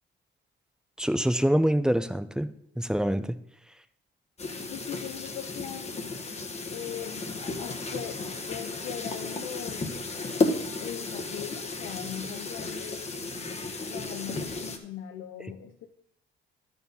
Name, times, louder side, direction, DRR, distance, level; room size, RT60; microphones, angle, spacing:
voice 1, 1.0-2.5 2.8-3.3, equal, 5° right, 11 dB, 0.5 m, -25 dB
sound 1, 4.4-14.8, left 3 dB, 30° left, 1.2 m, -34 dB
voice 2, 4.7-6.1 6.7-9.9 10.8-13.1 13.9-15.9, left 10 dB, 85° left, 5 dB, 0.7 m, -40 dB
11.0 x 4.7 x 5.4 m, 0.75 s
cardioid pair, 90°, 20 cm